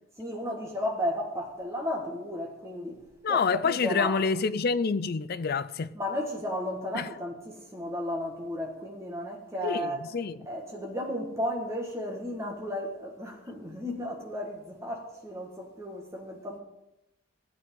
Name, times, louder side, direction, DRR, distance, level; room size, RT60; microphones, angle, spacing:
voice 1, 0.2-3.0 3.3-4.2 5.9-10.1 10.4-16.6, left 1 dB, 15° right, 1.6 m, -34 dB
voice 2, 3.2-5.9 6.9-7.1 9.6-10.4, left 5 dB, 45° left, 0.4 m, -27 dB
16.5 x 9.1 x 3.8 m
head